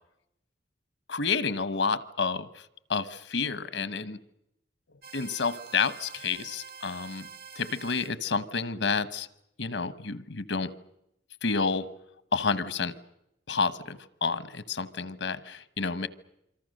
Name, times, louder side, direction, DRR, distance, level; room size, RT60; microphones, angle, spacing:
voice 1, 1.1-4.2 5.1-7.3 7.5-9.3 9.6-10.7 11.4-11.9 12.3-12.9 13.5-16.1, left 4 dB, 80° left, 14 dB, 1.1 m, -30 dB
sound 1, 5.0-8.1, right 6 dB, 55° right, 1.5 m, -46 dB
27.0 x 25.0 x 6.6 m, 0.82 s
head